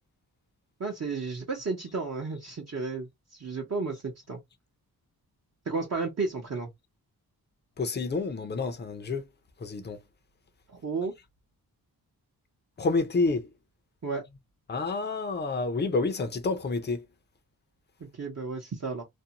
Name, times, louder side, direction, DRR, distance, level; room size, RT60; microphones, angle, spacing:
voice 1, 0.8-4.4 5.7-6.7 10.7-11.1 14.0-14.2 18.0-19.0, right 4 dB, 40° right, 0.8 m, -33 dB
voice 2, 7.8-9.3 9.6-10.0 12.8-13.5 14.7-17.1, left 3 dB, 25° left, 0.5 m, -29 dB
2.6 x 2.1 x 2.7 m
wide cardioid pair, 100°, 39 cm